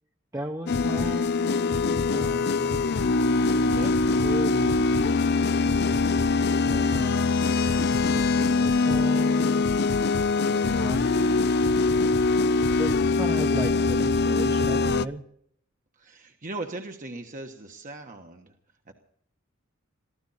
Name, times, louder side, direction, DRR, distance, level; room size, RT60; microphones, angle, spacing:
voice 1, 0.3-3.2 4.2-6.4 6.6-7.3 7.7-9.6 10.5-11.8 12.8-12.9 13.2-15.2, right 1 dB, 15° right, 3 dB, 0.9 m, -36 dB
sound 1, 0.7-15.1, left 3 dB, 55° left, 0.5 m, -23 dB
voice 2, 3.6-3.9 12.5-12.8 16.0-18.5 18.9-19.0, right 2 dB, 40° right, 3 dB, 1.3 m, -39 dB
23.0 x 15.0 x 4.2 m, 0.68 s
head